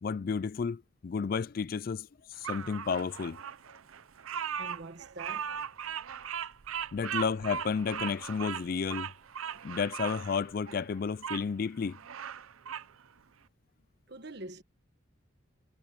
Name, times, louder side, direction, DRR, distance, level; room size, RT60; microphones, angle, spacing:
voice 1, 0.0-3.4 6.9-9.1 9.6-12.0, left 5 dB, 45° left, 0.3 m, -32 dB
Bird vocalization bird call bird song, 2.4-11.4 11.9-12.9, right 8 dB, 80° right, 0.6 m, -38 dB
voice 2, 4.6-5.6 7.1-7.2 14.1-14.6, right 2 dB, 50° right, 1.3 m, -45 dB
head